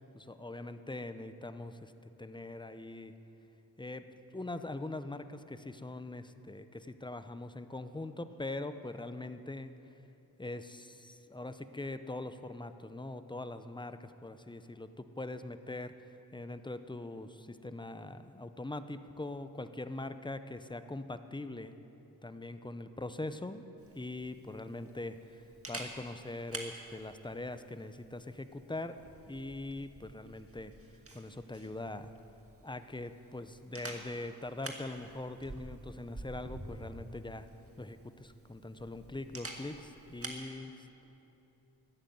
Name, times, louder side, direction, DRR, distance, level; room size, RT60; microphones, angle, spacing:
voice 1, 0.1-3.1 3.8-4.1 4.3-9.7 10.4-21.7 22.2-23.6 23.9-25.4 25.7-30.7 31.1-32.1 32.6-37.5 37.8-40.7, left 2 dB, 10° left, 11 dB, 0.7 m, -42 dB
Camera, 23.8-40.5, right 2 dB, 35° right, 1.9 m, -49 dB
14.0 x 9.4 x 9.3 m, 2.9 s
cardioid pair, 55°, 38 cm